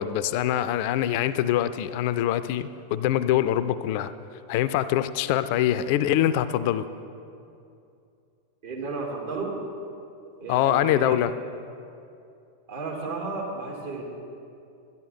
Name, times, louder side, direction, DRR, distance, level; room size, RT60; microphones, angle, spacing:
voice 1, 0.0-4.1 4.5-6.8 10.5-11.3, left 12 dB, 45° left, 14 dB, 0.4 m, -24 dB
voice 2, 8.6-9.5 10.4-11.2 12.7-14.0, right 3 dB, 55° right, -1 dB, 2.4 m, -33 dB
12.0 x 11.0 x 4.4 m, 2.6 s
figure-of-eight pair, 90°, 0 cm